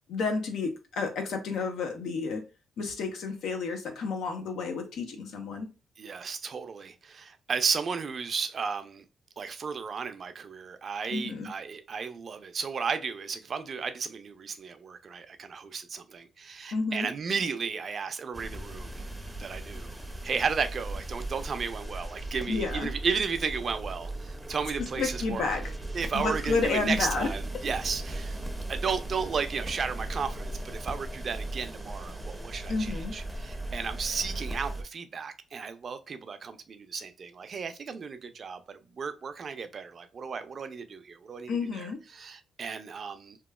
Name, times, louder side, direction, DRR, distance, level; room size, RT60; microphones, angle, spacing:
voice 1, 0.1-2.4 2.8-5.7 11.1-11.5 16.7-17.1 22.5-22.9 25.0-25.6 26.1-27.3 32.7-33.1 41.5-42.0, left 4 dB, 80° left, 0.7 m, -30 dB
voice 2, 6.0-9.0 9.4-19.0 19.4-20.0 20.2-25.4 25.9-28.4 28.7-43.4, right 5 dB, 50° right, 0.4 m, -34 dB
sound 1, 18.3-34.8, right 1 dB, 5° right, 0.6 m, -37 dB
2.9 x 2.3 x 2.2 m
cardioid pair, 75°, 0 cm